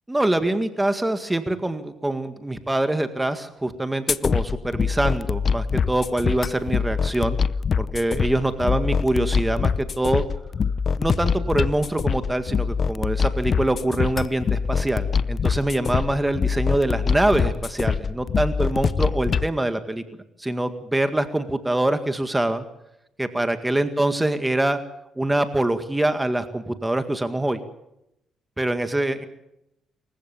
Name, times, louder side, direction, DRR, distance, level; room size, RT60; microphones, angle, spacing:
voice 1, 0.1-7.4 7.8-10.2 11.0-20.0 20.4-22.7 23.2-24.8 25.2-27.6 28.6-29.2, right 1 dB, 10° right, 9 dB, 1.9 m, -24 dB
sound 1, 4.1-19.5, left 6 dB, 45° left, 0.7 m, -24 dB
27.5 x 15.0 x 7.1 m, 0.83 s
cardioid pair, 90°, 0 cm